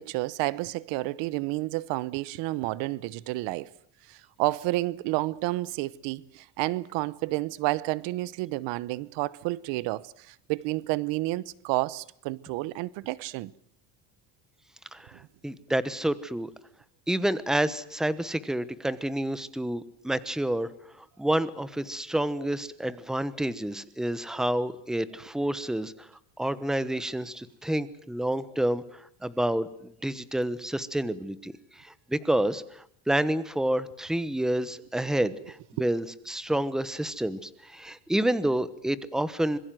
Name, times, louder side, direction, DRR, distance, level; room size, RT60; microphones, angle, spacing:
voice 1, 0.0-3.7 4.1-13.5 15.1-15.3, right 19 dB, 80° right, 1.0 m, -30 dB
voice 2, 15.4-16.5 17.1-20.7 21.0-26.1 26.4-28.8 29.2-31.5 31.8-39.6, right 1 dB, ahead, 1.1 m, -29 dB
26.0 x 22.0 x 7.7 m
cardioid pair, 145°, 43 cm